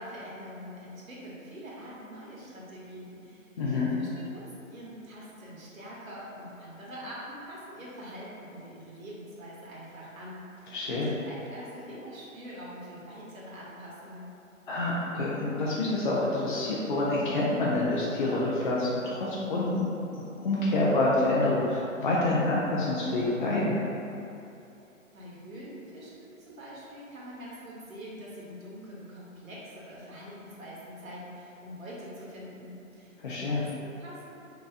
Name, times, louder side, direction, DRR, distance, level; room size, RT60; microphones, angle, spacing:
voice 1, 0.0-14.3 25.1-34.4, equal, 75° right, -6 dB, 1.1 m, -44 dB
voice 2, 3.6-3.9 10.7-11.1 14.7-19.8 20.1-23.8 33.2-33.6, left 2 dB, 40° left, -6 dB, 0.4 m, -27 dB
3.7 x 2.8 x 2.4 m, 2.8 s
figure-of-eight pair, 135°, 41 cm